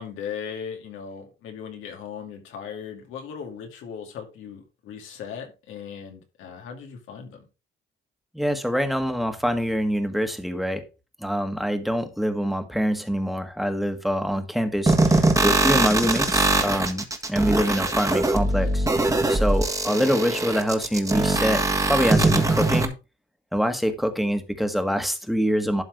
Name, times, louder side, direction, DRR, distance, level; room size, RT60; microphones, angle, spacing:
voice 1, 0.0-7.5, left 7 dB, 90° left, 3 dB, 2.5 m, -38 dB
voice 2, 8.3-10.9 11.2-18.9 19.3-22.9 23.5-25.8, equal, ahead, 7 dB, 1.6 m, -25 dB
sound 1, 14.9-22.9, right 2 dB, 15° right, 1.6 m, -22 dB
12.0 x 4.0 x 4.8 m, 0.30 s
cardioid pair, 90°, 20 cm